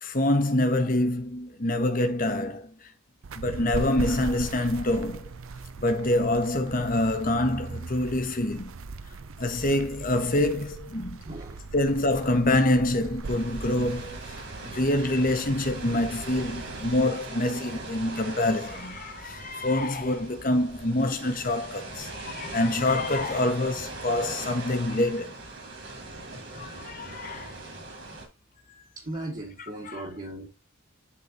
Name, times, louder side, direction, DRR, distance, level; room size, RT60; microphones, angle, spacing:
voice 1, 0.0-2.7 3.4-5.3 5.8-8.7 9.4-11.2 11.7-14.2 14.6-25.3 26.5-27.6 29.8-30.0, left 1 dB, 40° left, 1.1 m, -26 dB
sound 1, 3.2-17.0, right 3 dB, 70° right, 0.6 m, -39 dB
voice 2, 11.2-11.6 29.0-30.5, right 1 dB, 35° right, 1.6 m, -37 dB
sound 2, 13.2-28.3, right 2 dB, 55° right, 2.8 m, -40 dB
11.0 x 4.0 x 2.7 m
head